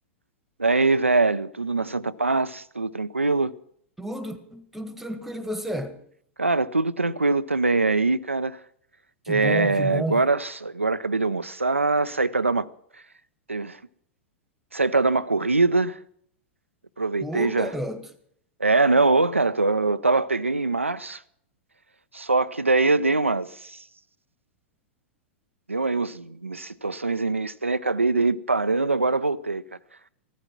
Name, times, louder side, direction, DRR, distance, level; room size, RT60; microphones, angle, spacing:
voice 1, 0.6-3.5 6.4-8.6 9.3-12.7 13.5-13.8 14.7-16.0 17.0-17.7 18.6-21.2 22.1-23.8 25.7-29.6, right 3 dB, 85° right, 0.6 m, -23 dB
voice 2, 4.0-6.0 9.2-10.2 17.2-18.0, equal, 5° right, 1.7 m, -31 dB
15.5 x 13.5 x 6.0 m
figure-of-eight pair, 95°, 7 cm